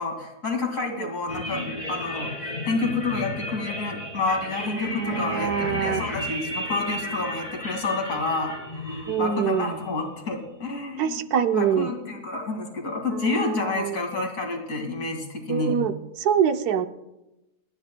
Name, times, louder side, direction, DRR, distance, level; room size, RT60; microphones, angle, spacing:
voice 1, 0.0-1.6 1.9-2.3 2.6-11.2 11.5-15.8, left 3 dB, 60° left, 1 dB, 2.6 m, -29 dB
sound 1, 1.3-10.7, left 1 dB, 25° left, 3.8 m, -34 dB
voice 2, 4.7-6.0 9.1-9.8 11.0-11.9 13.1-14.0 15.5-16.9, right 8 dB, 80° right, 9 dB, 1.2 m, -25 dB
29.0 x 9.9 x 2.2 m, 0.94 s
omnidirectional pair, 1.6 m